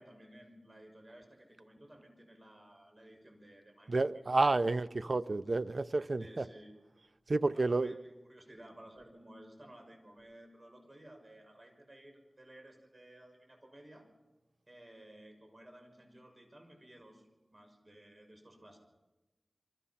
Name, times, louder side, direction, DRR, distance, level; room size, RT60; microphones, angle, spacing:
voice 1, 0.0-4.4 6.2-6.7 7.5-14.0 14.7-18.8, right 1 dB, 40° right, 6.0 m, -56 dB
voice 2, 3.9-6.4 7.3-7.9, right 3 dB, 65° right, 0.7 m, -30 dB
27.5 x 24.0 x 5.8 m
wide cardioid pair, 50°, 0 cm